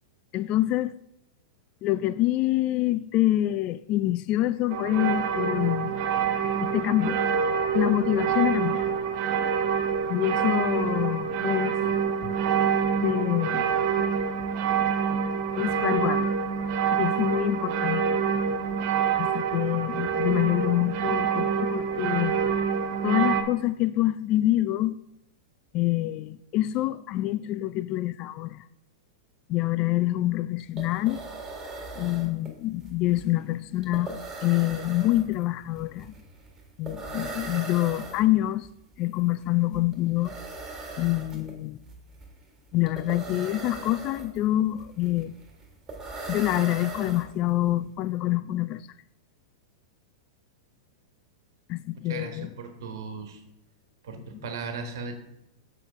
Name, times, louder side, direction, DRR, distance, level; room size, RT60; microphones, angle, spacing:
voice 1, 0.3-0.9 1.8-5.9 6.6-7.2 7.7-8.9 10.1-11.8 12.2-12.3 13.0-13.7 15.6-16.3 16.9-18.1 19.2-22.4 23.0-25.0 25.7-28.6 29.5-31.2 32.0-36.1 36.8-38.7 39.0-40.4 41.0-41.8 42.7-45.3 46.3-48.8 51.7-52.5, left 15 dB, 40° left, 0.4 m, -26 dB
sound 1, 4.7-23.4, right 7 dB, 50° right, 0.8 m, -26 dB
sound 2, 30.3-30.4 30.6-47.7, right 3 dB, 20° right, 1.8 m, -40 dB
voice 2, 51.9-53.4 54.0-55.1, right 4 dB, 65° right, 1.4 m, -37 dB
6.9 x 6.8 x 3.5 m
hypercardioid pair, 105°, 2 cm